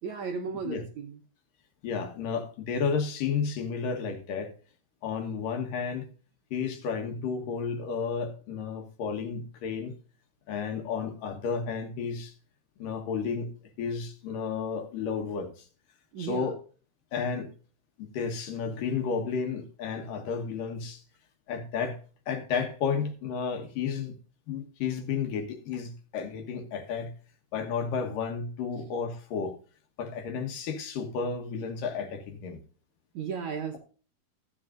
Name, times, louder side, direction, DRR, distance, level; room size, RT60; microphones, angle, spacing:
voice 1, 0.0-1.2 16.1-16.5 33.1-33.8, right 6 dB, 65° right, 2 dB, 1.9 m, -35 dB
voice 2, 1.8-4.5 5.0-6.1 6.5-10.0 10.5-12.3 12.8-13.5 13.8-15.7 16.2-16.6 17.1-17.5 18.1-21.0 21.5-22.0 22.3-24.1 24.5-27.1 27.5-29.6 30.0-32.6, left 6 dB, 70° left, 5 dB, 2.8 m, -32 dB
14.5 x 9.4 x 2.5 m, 0.39 s
omnidirectional pair, 4.3 m